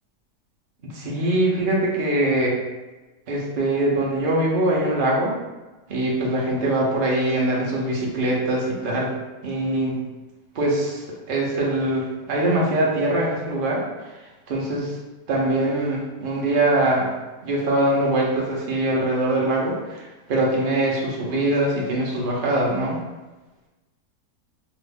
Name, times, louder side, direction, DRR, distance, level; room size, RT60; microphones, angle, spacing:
voice 1, 0.9-2.6 3.3-5.4 5.9-9.1 9.4-10.0 10.5-13.8 14.5-15.0 15.3-17.1 17.4-23.0, right 1 dB, 65° right, -3 dB, 0.5 m, -22 dB
2.9 x 2.4 x 3.4 m, 1.2 s
omnidirectional pair, 1.8 m